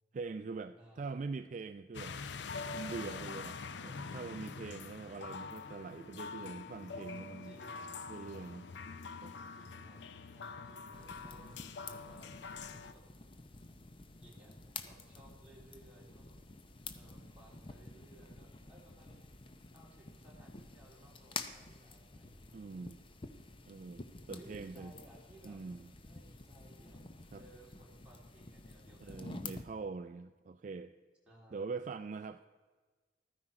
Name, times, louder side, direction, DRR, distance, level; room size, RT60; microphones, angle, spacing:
voice 1, 0.1-2.1 2.7-7.6 8.1-8.7 9.2-9.3 22.5-23.0 23.7-24.9 25.4-25.9 27.3-27.4 29.0-30.9 31.5-32.4, right 4 dB, 40° right, 10 dB, 0.3 m, -43 dB
voice 2, 0.7-1.3 7.4-8.1 9.5-10.0 10.3-13.0 14.2-14.5 14.8-16.4 16.9-19.2 19.7-22.5 22.9-23.3 24.3-25.6 26.0-27.0 27.3-29.3 31.3-31.6, right 1 dB, 5° right, -5 dB, 3.1 m, -60 dB
sound 1, 1.9-12.9, left 4 dB, 75° left, 0.5 m, -45 dB
sound 2, 10.9-29.6, left 4 dB, 30° left, 0.6 m, -50 dB
13.0 x 9.8 x 4.8 m, 1.4 s
head